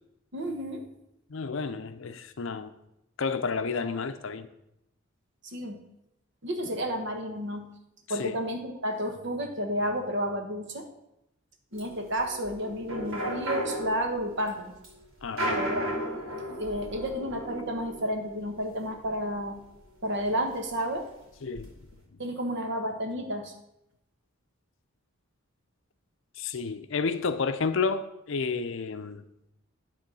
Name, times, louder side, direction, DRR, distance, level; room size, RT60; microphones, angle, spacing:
voice 1, 0.3-0.8 5.4-5.8 6.4-7.7 8.1-10.8 11.7-14.7 15.5-15.8 16.5-19.6 20.0-21.1 22.2-23.5, equal, 55° right, 1.3 m, -31 dB
voice 2, 1.3-2.7 3.2-4.5 8.2-8.3 15.2-15.6 21.4-21.7 26.4-29.2, left 4 dB, 65° left, 0.6 m, -31 dB
sound 1, 11.7-20.3 20.7-20.8 21.0-21.6, right 1 dB, 80° right, 2.4 m, -35 dB
9.9 x 3.7 x 6.2 m
head